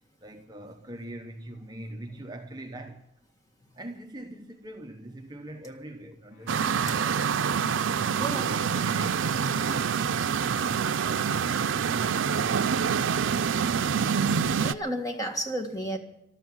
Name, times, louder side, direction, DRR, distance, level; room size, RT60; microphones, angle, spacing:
voice 1, 0.2-3.1 3.7-7.9 8.2-10.0 10.4-11.4, right 1 dB, 20° right, 0.9 m, -43 dB
Wind instrument woodwind instrument, 6.3-10.7, left 1 dB, 65° left, 4.6 m, -56 dB
sound 1, 6.5-14.7, right 6 dB, 80° right, 0.5 m, -26 dB
voice 2, 14.6-16.0, right 1 dB, 20° left, 1.8 m, -31 dB
14.0 x 12.5 x 7.3 m
head